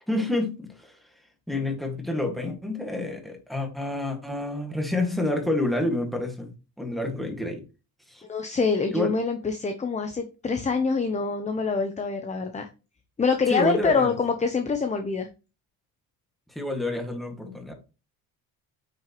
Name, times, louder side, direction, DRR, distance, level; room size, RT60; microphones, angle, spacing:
voice 1, 0.1-0.9 1.5-6.5 6.8-7.6 8.1-8.2 8.9-9.1 13.5-14.2 16.5-17.7, left 1 dB, ahead, 1.9 m, -28 dB
voice 2, 8.3-12.7 13.2-15.3, left 4 dB, 20° left, 0.8 m, -25 dB
8.9 x 6.4 x 3.1 m
cardioid pair, 140°, 39 cm